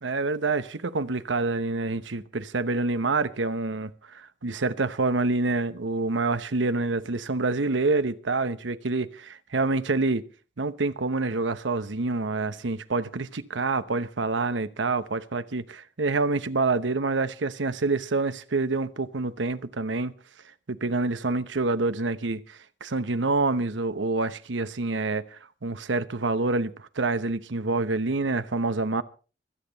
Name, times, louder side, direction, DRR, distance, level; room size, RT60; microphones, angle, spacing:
voice 1, 0.0-10.2 10.6-20.1 20.7-29.0, right 3 dB, 85° right, 0.9 m, -27 dB
25.0 x 8.9 x 4.0 m
head